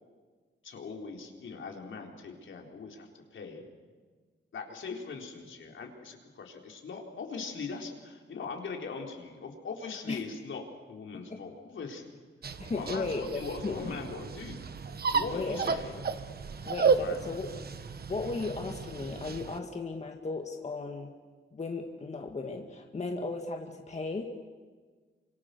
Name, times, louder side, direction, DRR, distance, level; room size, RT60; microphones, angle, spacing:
voice 1, 0.6-3.6 4.5-12.2 12.7-14.6 15.1-16.0 17.0-17.2, left 4 dB, 75° left, 1 dB, 4.1 m, -41 dB
sound 1, 12.4-19.6, right 5 dB, 50° right, 1.3 m, -33 dB
voice 2, 12.6-14.0 15.3-15.6 16.0-16.1 16.6-17.5 18.1-21.1 21.5-24.2, left 3 dB, 35° left, 3 dB, 2.0 m, -35 dB
29.0 x 25.5 x 6.9 m, 1.5 s
wide cardioid pair, 115°, 20 cm